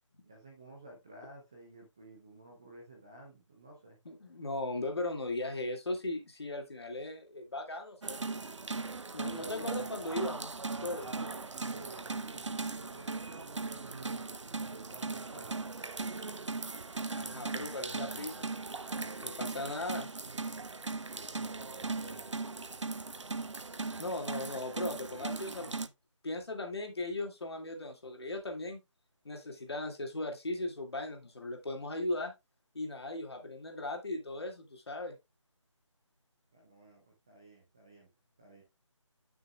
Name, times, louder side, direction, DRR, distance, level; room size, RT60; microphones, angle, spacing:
voice 1, 0.2-4.0 9.3-9.9 10.7-15.6 20.7-23.2 36.5-38.1 38.4-38.6, right 2 dB, 10° right, 0.5 m, -53 dB
voice 2, 4.1-8.2 9.1-10.5 10.8-11.1 17.2-18.5 19.2-20.1 24.0-25.9 26.2-28.8 29.2-32.3 32.7-35.2, left 2 dB, 55° left, 2.1 m, -38 dB
sound 1, 8.0-25.9, right 3 dB, 65° right, 0.6 m, -39 dB
10.5 x 6.1 x 2.3 m
figure-of-eight pair, 160°, 16 cm